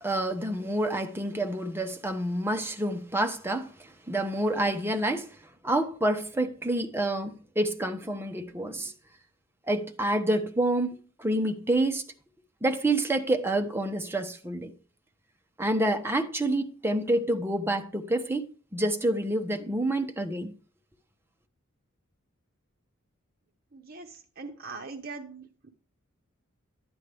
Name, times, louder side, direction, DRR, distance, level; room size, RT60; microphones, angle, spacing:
voice 1, 0.0-5.3 5.6-8.9 9.7-12.0 12.6-14.7 15.6-20.5, right 1 dB, 10° right, 0.8 m, -28 dB
voice 2, 23.7-24.1 24.4-25.7, right 4 dB, 45° right, 0.9 m, -41 dB
11.0 x 8.7 x 3.4 m
head